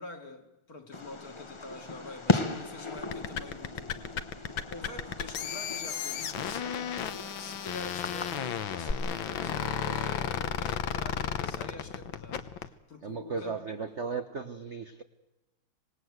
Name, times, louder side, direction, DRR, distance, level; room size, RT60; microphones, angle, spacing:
voice 1, 0.0-13.6, left 2 dB, 45° left, 2.4 m, -46 dB
Fireworks, 0.9-8.9, left 3 dB, 25° left, 0.6 m, -36 dB
sound 1, 3.0-12.7, left 9 dB, 65° left, 1.8 m, -34 dB
voice 2, 13.0-15.0, right 5 dB, 45° right, 0.9 m, -36 dB
26.0 x 19.0 x 8.0 m
omnidirectional pair, 2.4 m